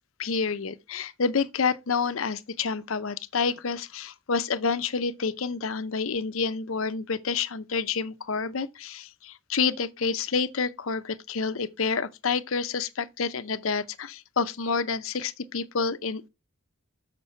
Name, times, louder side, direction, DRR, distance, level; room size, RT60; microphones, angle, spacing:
voice 1, 0.2-16.3, left 5 dB, 75° left, 0.7 m, -28 dB
7.2 x 5.9 x 4.4 m
head